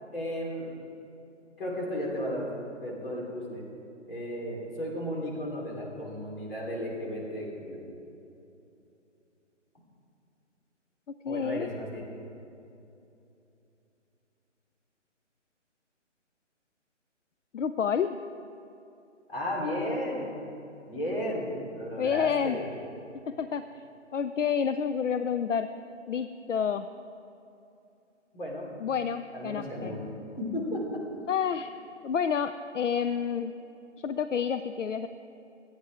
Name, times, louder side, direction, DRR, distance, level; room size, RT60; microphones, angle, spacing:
voice 1, 0.1-0.7 1.6-2.5 2.8-3.6 4.1-7.8 11.3-12.1 19.3-20.3 20.9-22.7 28.3-28.7 29.3-30.1 30.4-31.0, equal, 50° left, -3 dB, 3.8 m, -34 dB
voice 2, 11.2-11.7 17.5-18.2 22.0-22.6 23.3-23.8 24.1-25.7 26.1-26.9 28.8-29.9 31.3-31.7 32.0-33.5 34.0-35.1, left 7 dB, 75° left, 10 dB, 0.6 m, -29 dB
26.5 x 8.9 x 3.6 m, 2.8 s
hypercardioid pair, 175°, 37 cm